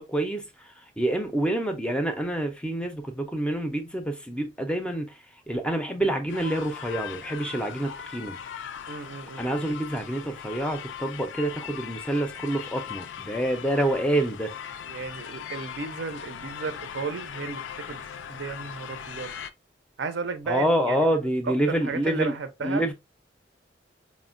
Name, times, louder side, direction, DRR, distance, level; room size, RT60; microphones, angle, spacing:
voice 1, 0.0-5.2 5.5-8.4 9.4-14.5 20.5-22.3 22.6-22.9, right 1 dB, 5° left, 0.4 m, -27 dB
sound 1, 6.3-19.5, left 8 dB, 90° left, 0.3 m, -39 dB
voice 2, 8.9-9.6 14.9-18.0 18.3-19.4 20.0-21.0 21.5-22.8, right 4 dB, 75° right, 0.5 m, -34 dB
4.2 x 2.1 x 2.4 m
head